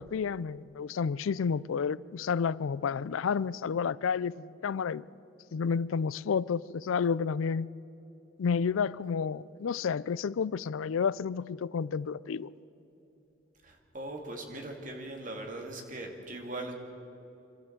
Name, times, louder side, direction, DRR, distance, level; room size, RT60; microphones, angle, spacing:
voice 1, 0.0-5.0 5.5-7.7 8.4-12.5, left 6 dB, 90° left, 0.4 m, -30 dB
voice 2, 13.6-16.7, right 2 dB, 40° right, 2.5 m, -40 dB
25.5 x 13.5 x 8.0 m
head